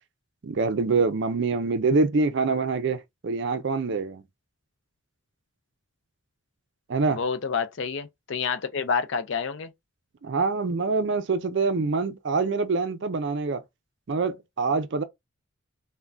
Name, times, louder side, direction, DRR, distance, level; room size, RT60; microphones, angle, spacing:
voice 1, 0.4-4.2 6.9-7.2 10.2-13.6 14.1-15.0, right 4 dB, 55° right, 0.4 m, -25 dB
voice 2, 7.1-9.7, left 5 dB, 60° left, 0.4 m, -28 dB
3.4 x 2.2 x 2.4 m
head